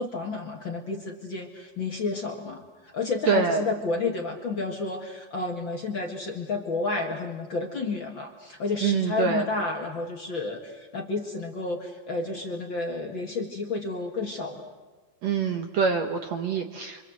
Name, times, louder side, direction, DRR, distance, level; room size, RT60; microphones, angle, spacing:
voice 1, 0.0-14.7, left 3 dB, 45° left, 1 dB, 1.9 m, -31 dB
voice 2, 3.3-3.6 8.8-9.5 15.2-17.1, right 6 dB, 65° right, 5 dB, 1.9 m, -25 dB
26.0 x 25.5 x 7.8 m, 1.3 s
omnidirectional pair, 4.2 m